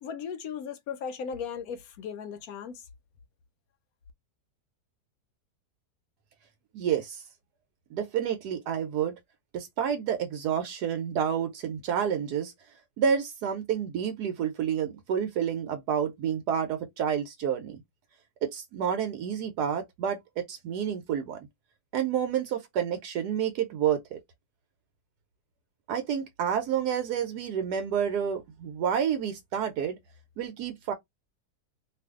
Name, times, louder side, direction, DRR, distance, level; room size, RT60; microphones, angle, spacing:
voice 1, 0.0-2.8, left 7 dB, 70° left, 0.9 m, -37 dB
voice 2, 6.7-7.2 7.9-9.2 9.5-12.5 13.0-17.8 18.4-21.4 21.9-24.2 25.9-30.0 30.4-30.9, right 8 dB, 75° right, 1.2 m, -29 dB
2.7 x 2.5 x 3.5 m
omnidirectional pair, 1.8 m